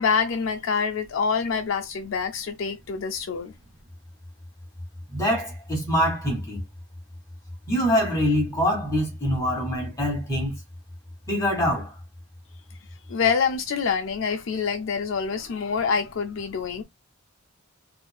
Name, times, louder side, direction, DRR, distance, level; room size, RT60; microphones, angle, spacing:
voice 1, 0.0-3.5 13.1-16.8, left 5 dB, 60° left, 0.4 m, -26 dB
voice 2, 5.1-6.6 7.7-10.6 11.3-11.9, equal, 15° left, 1.7 m, -24 dB
4.4 x 2.5 x 2.3 m
head